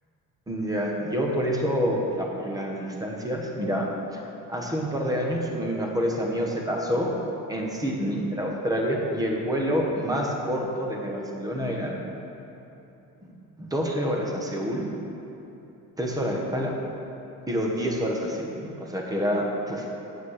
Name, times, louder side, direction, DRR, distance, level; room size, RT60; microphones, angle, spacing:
voice 1, 0.5-4.2 4.5-7.1 7.5-12.0 13.6-14.9 16.0-16.7 17.5-20.0, equal, 10° right, -1 dB, 1.2 m, -27 dB
9.3 x 7.4 x 6.5 m, 2.9 s
cardioid pair, 170°, 35 cm